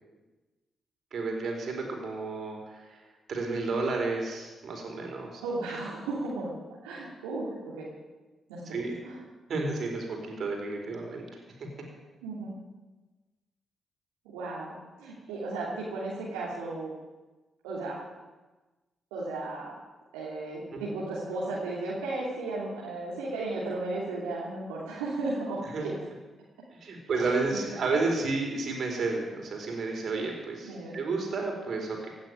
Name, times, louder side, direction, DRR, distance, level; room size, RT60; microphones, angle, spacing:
voice 1, 1.1-3.0 3.3-5.4 8.7-9.0 9.5-11.2 20.7-20.8 25.7-25.8 26.7-32.1, right 3 dB, 60° right, 1 dB, 4.7 m, -31 dB
voice 2, 5.4-6.5 6.8-7.9 8.5-8.8 9.0-9.2 12.2-12.5 14.2-16.9 17.6-18.0 19.1-19.7 20.1-25.9 27.1-28.1 30.6-31.0, right 2 dB, 85° right, -7 dB, 3.0 m, -35 dB
17.0 x 8.7 x 9.2 m, 1.2 s
hypercardioid pair, 40°, 0 cm